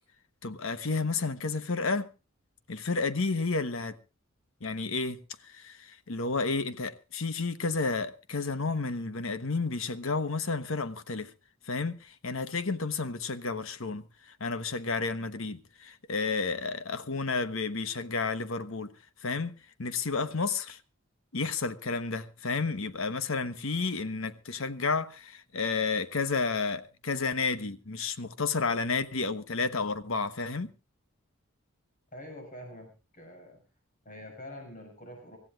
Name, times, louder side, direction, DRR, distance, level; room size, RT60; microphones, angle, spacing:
voice 1, 0.4-2.1 2.7-4.0 4.6-11.3 11.6-18.9 19.2-20.8 21.3-30.7, left 4 dB, 70° left, 1.1 m, -31 dB
voice 2, 32.1-33.6 34.0-35.4, left 1 dB, 35° left, 6.3 m, -45 dB
25.0 x 15.0 x 2.4 m
head